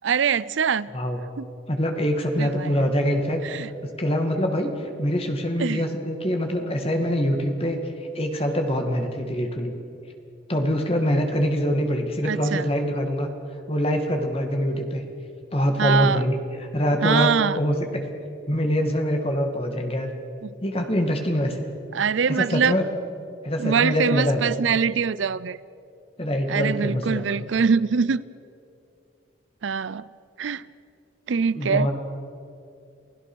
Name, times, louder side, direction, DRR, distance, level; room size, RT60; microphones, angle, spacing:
voice 1, 0.0-0.9 1.4-1.5 2.4-2.9 3.4-3.7 5.6-5.8 12.2-12.6 15.8-16.2 17.0-17.6 20.4-20.5 21.9-22.7 23.6-25.6 26.5-28.2 29.6-30.1 30.4-30.6 31.3-31.9, right 6 dB, 75° right, 19 dB, 0.5 m, -23 dB
voice 2, 1.7-7.8 8.1-9.7 10.5-13.3 13.7-15.0 15.5-18.0 18.5-20.1 20.6-21.7 22.3-22.9 23.4-24.5 26.2-27.3 31.5-31.9, equal, 30° left, 4 dB, 2.2 m, -24 dB
29.0 x 17.0 x 6.3 m, 2.6 s
head